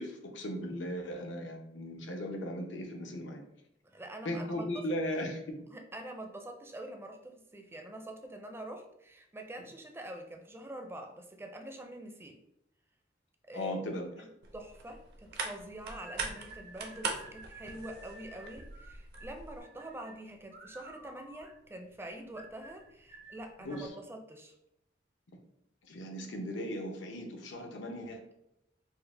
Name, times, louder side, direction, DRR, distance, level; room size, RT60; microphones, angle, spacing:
voice 1, 0.0-3.4 4.2-5.6 13.5-14.1 23.6-23.9 25.9-28.2, equal, 80° left, 3 dB, 0.7 m, -37 dB
voice 2, 3.8-4.8 5.7-12.4 13.5-13.8 14.2-24.5, right 1 dB, 15° right, 4 dB, 0.4 m, -45 dB
sound 1, 14.4-19.6, right 4 dB, 60° right, 0.6 m, -41 dB
sound 2, 15.9-23.9, right 2 dB, 85° right, 1.2 m, -53 dB
4.5 x 2.1 x 3.3 m, 0.82 s
head